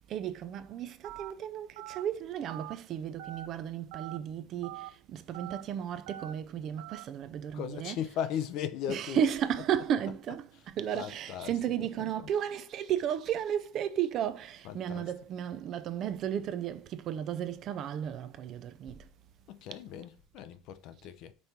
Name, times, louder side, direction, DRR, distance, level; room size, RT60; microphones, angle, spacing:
voice 1, 0.0-8.0 8.9-19.1, right 9 dB, 35° right, 0.5 m, -34 dB
Telephone, 1.0-1.3 1.8-2.0 2.5-2.7 3.2-3.5 3.9-4.2 4.6-4.9 5.3-5.6 6.1-6.3 6.8-7.0, right 15 dB, 85° right, 0.5 m, -43 dB
voice 2, 7.5-9.3 10.3-10.7 10.9-11.6 12.0-12.3 14.6-15.1 19.5-21.3, left 9 dB, 45° left, 0.5 m, -38 dB
5.4 x 4.3 x 4.5 m
cardioid pair, 175°, 0 cm